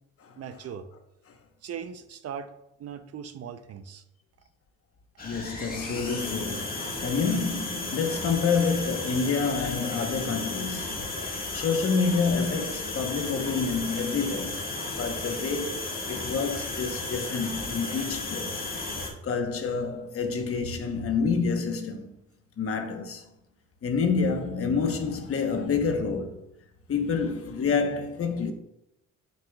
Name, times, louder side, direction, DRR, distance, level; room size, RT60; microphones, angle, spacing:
voice 1, 0.4-0.9 1.6-2.5 2.8-4.0, right 7 dB, 55° right, 0.6 m, -39 dB
voice 2, 5.2-11.1 11.5-14.7 15.0-18.7 19.2-22.1 22.6-23.3 23.8-26.4 26.9-28.5, left 5 dB, 50° left, 1.0 m, -28 dB
sound 1, 5.2-19.1, left 2 dB, 30° left, 1.6 m, -34 dB
7.3 x 6.1 x 2.3 m
cardioid pair, 90°, 30 cm